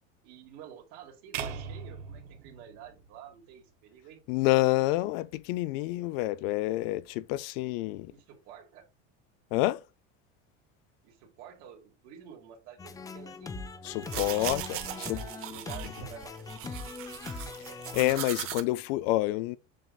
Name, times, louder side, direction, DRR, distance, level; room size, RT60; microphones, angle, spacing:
voice 1, 0.2-4.2 8.1-8.9 11.0-14.6 14.9-16.9, right 8 dB, 60° right, 2.2 m, -50 dB
sound 1, 1.3-3.6, right 7 dB, 85° right, 1.2 m, -40 dB
voice 2, 4.3-8.1 9.5-9.8 13.8-15.2 17.7-19.6, left 18 dB, 65° left, 0.5 m, -28 dB
sound 2, 12.8-18.2, left 4 dB, 10° left, 0.5 m, -41 dB
sound 3, 13.9-18.6, right 12 dB, 45° right, 0.9 m, -39 dB
7.5 x 5.4 x 2.4 m
supercardioid pair, 145°, 31 cm